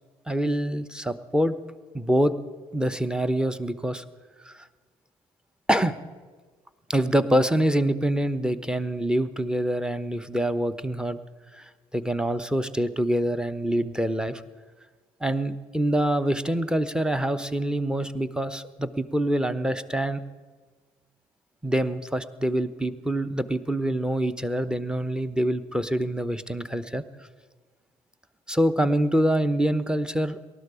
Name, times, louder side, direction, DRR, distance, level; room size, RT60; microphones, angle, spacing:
voice 1, 0.3-1.5 1.9-2.3 2.7-4.0 4.4-4.7 5.7-6.0 6.9-11.2 11.5-14.4 15.2-20.2 21.6-27.0 28.5-30.4, right 1 dB, 5° right, 12 dB, 1.0 m, -25 dB
19.0 x 12.5 x 5.0 m, 1.4 s
hypercardioid pair, 50°, 18 cm